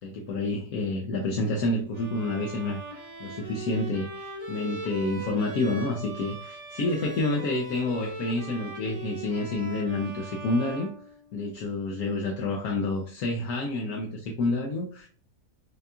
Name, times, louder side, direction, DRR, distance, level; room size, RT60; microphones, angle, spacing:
voice 1, 0.0-10.9 11.3-15.1, left 2 dB, 75° left, 1.2 m, -29 dB
Bowed string instrument, 1.9-11.7, right 3 dB, 30° right, 0.9 m, -40 dB
6.4 x 2.4 x 2.4 m
omnidirectional pair, 1.6 m